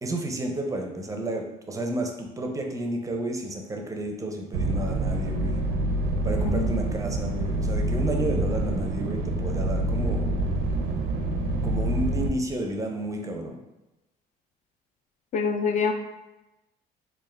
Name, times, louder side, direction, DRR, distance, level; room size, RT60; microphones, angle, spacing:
voice 1, 0.0-5.6 6.2-10.3 11.6-13.6, right 1 dB, 20° right, 2 dB, 0.5 m, -31 dB
sound 1, 4.5-12.3, right 1 dB, 90° right, 0.5 m, -26 dB
voice 2, 6.4-6.8 15.3-15.9, left 5 dB, 45° left, 4 dB, 0.4 m, -25 dB
3.5 x 2.4 x 3.3 m, 1.0 s
cardioid pair, 110°, 17 cm